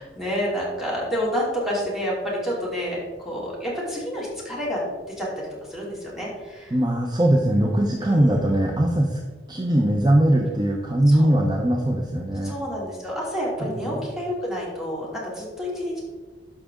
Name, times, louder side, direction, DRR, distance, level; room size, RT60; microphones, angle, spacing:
voice 1, 0.0-6.7 8.0-8.6 11.1-11.3 12.4-16.0, equal, ahead, -5 dB, 3.0 m, -29 dB
voice 2, 6.7-9.2 9.5-12.5 13.6-14.0, right 1 dB, 25° right, 1 dB, 0.8 m, -21 dB
12.0 x 5.7 x 3.7 m, 1.3 s
head